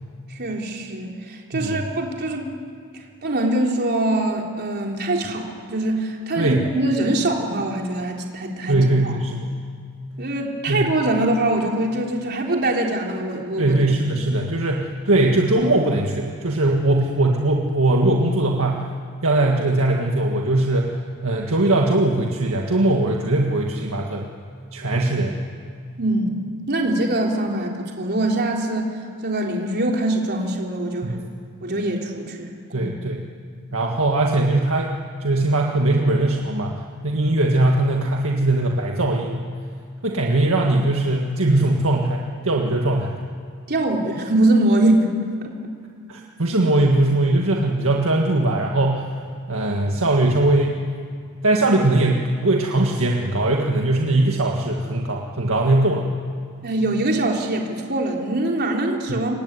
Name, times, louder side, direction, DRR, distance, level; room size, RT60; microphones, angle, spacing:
voice 1, 0.3-2.5 2.9-9.1 10.2-13.8 26.0-26.3 26.7-28.9 29.2-31.2 31.6-32.9 43.7-45.2 45.4-45.6 56.6-59.3, right 1 dB, 50° right, 0 dB, 3.9 m, -23 dB
voice 2, 6.4-6.7 8.7-9.6 10.7-10.9 13.6-18.9 19.2-24.3 24.7-25.4 31.0-31.2 32.7-33.2 33.7-34.9 35.2-36.8 37.0-39.5 40.0-43.2 46.1-49.1 49.5-50.8 51.4-56.1 59.1-59.2, right 2 dB, 65° right, 0 dB, 1.9 m, -20 dB
25.5 x 23.0 x 9.8 m, 2.1 s
head